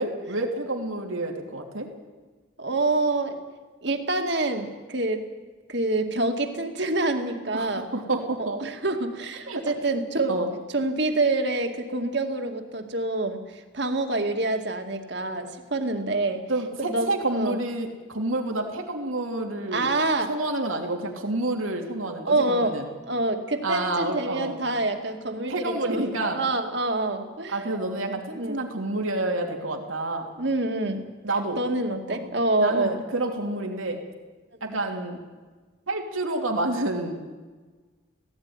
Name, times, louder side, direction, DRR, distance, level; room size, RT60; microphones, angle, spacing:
voice 1, 0.0-1.9 7.5-8.6 9.5-9.8 10.3-10.5 16.5-19.9 20.3-22.9 23.6-24.6 25.5-26.4 27.5-30.3 31.2-31.6 32.1-32.3 32.6-34.0 34.6-35.2 35.9-37.1, right 2 dB, 90° right, 2 dB, 3.2 m, -29 dB
voice 2, 2.6-3.4 3.8-5.2 5.7-7.9 8.4-10.4 10.7-16.4 16.8-17.6 19.7-20.3 22.2-22.8 23.1-26.1 26.3-27.6 28.3-28.6 30.4-31.0 31.6-33.0, right 2 dB, 55° right, 5 dB, 2.2 m, -26 dB
17.0 x 17.0 x 9.7 m, 1.3 s
head